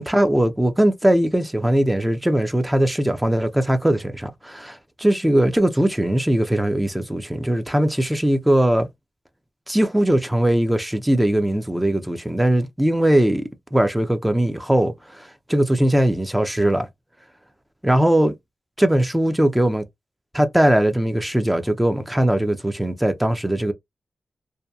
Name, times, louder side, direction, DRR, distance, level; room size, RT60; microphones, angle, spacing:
voice 1, 0.0-8.9 9.7-13.4 13.7-16.9 17.8-18.4 18.8-19.8 20.3-23.7, right 1 dB, 10° right, 0.5 m, -20 dB
2.7 x 2.2 x 2.3 m
cardioid pair, 55°, 0 cm